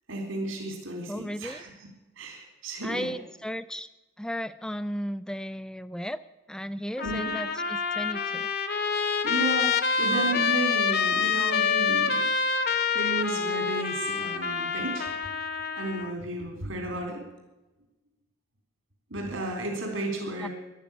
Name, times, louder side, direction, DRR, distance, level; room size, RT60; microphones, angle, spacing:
voice 1, 0.1-1.7 2.2-3.1 7.0-7.3 9.2-12.3 12.9-15.4 15.8-17.2 19.1-20.5, right 2 dB, 70° right, 1 dB, 3.8 m, -33 dB
voice 2, 1.1-1.6 2.8-3.9 4.2-6.2 6.5-8.5 20.4-20.5, equal, 5° left, 13 dB, 0.4 m, -35 dB
Trumpet, 7.0-16.1, left 5 dB, 45° left, 1.1 m, -27 dB
14.0 x 11.5 x 8.8 m, 1.1 s
head